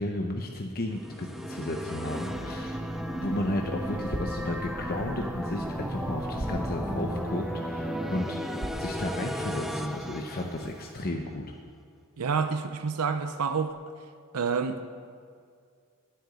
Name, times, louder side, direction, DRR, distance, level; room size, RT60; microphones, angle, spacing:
voice 1, 0.0-2.8 3.1-8.4 8.8-11.5, left 1 dB, 45° left, 2 dB, 0.9 m, -33 dB
sound 1, 0.9-11.1, equal, ahead, 0.5 m, -34 dB
sound 2, 2.1-11.0, equal, 40° right, 2.7 m, -53 dB
sound 3, 2.9-9.8, right 1 dB, 60° right, 1.3 m, -44 dB
voice 2, 12.2-13.7 14.3-14.8, right 5 dB, 80° right, 9 dB, 0.6 m, -28 dB
10.5 x 7.8 x 9.6 m, 2.2 s
head